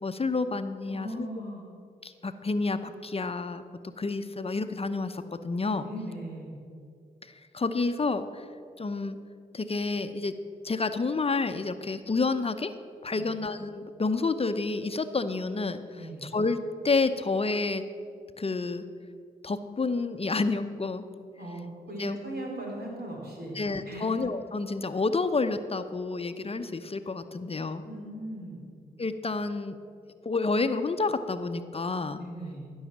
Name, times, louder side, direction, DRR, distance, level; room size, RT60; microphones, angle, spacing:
voice 1, 0.0-1.3 2.0-3.6 4.0-5.9 7.2-8.5 8.8-9.2 9.5-10.3 10.6-12.7 13.0-16.6 16.8-17.8 18.4-18.8 19.4-21.0 22.0-22.2 23.5-27.8 29.0-29.8 30.2-32.2, left 3 dB, 35° left, 9 dB, 0.7 m, -29 dB
voice 2, 0.9-1.6 5.8-6.5 13.1-13.4 15.9-16.3 21.4-23.6 23.8-24.1 27.8-28.6 32.2-32.7, right 1 dB, 70° right, -2 dB, 3.7 m, -38 dB
15.0 x 6.4 x 7.3 m, 2.3 s
supercardioid pair, 45°, 17 cm